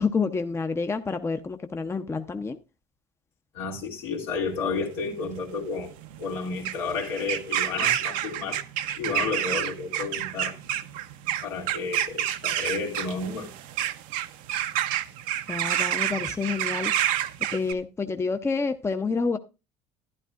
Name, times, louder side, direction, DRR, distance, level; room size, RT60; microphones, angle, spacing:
voice 1, 0.0-2.6 15.5-16.9 17.5-19.4, left 4 dB, 20° left, 0.7 m, -28 dB
voice 2, 3.5-8.6 8.9-10.6 11.4-13.5, left 4 dB, 80° left, 2.4 m, -31 dB
sound 1, 4.3-17.7, right 11 dB, 70° right, 0.7 m, -29 dB
12.0 x 10.5 x 2.4 m
hypercardioid pair, 80°, 14 cm